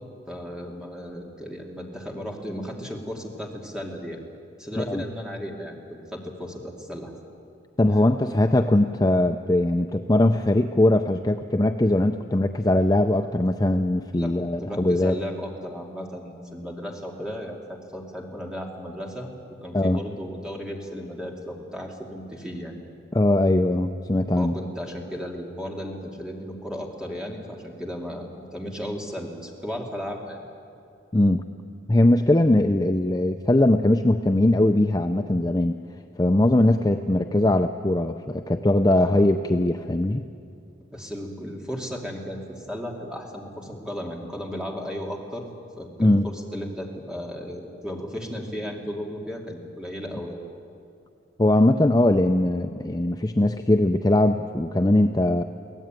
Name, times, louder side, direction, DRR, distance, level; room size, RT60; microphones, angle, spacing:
voice 1, 0.3-4.2 4.6-5.7 6.1-7.1 7.9-8.0 14.1-19.3 19.6-22.7 24.3-30.4 38.9-39.2 40.9-45.5 45.8-50.4, equal, 5° right, -1 dB, 2.5 m, -35 dB
voice 2, 7.8-15.2 19.7-20.0 23.1-24.5 31.1-31.5 31.9-35.8 36.2-40.2 46.0-46.3 51.4-55.4, left 1 dB, 20° left, 6 dB, 0.5 m, -20 dB
23.5 x 17.0 x 9.0 m, 2.5 s
head